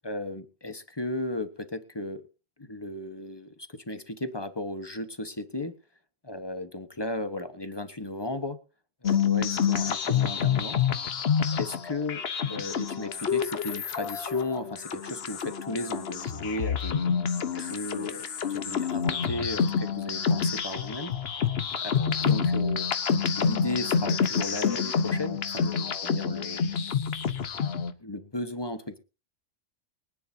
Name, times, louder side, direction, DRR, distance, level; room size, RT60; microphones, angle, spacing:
voice 1, 0.0-2.2 2.6-5.7 6.2-8.6 9.0-10.8 11.6-12.2 12.5-18.2 18.5-21.1 21.8-22.9 23.3-26.7 28.0-29.0, left 1 dB, 20° left, 9 dB, 1.2 m, -35 dB
sound 1, 9.0-27.9, left 6 dB, 55° left, 1.1 m, -28 dB
23.0 x 9.9 x 2.7 m, 0.31 s
omnidirectional pair, 1.3 m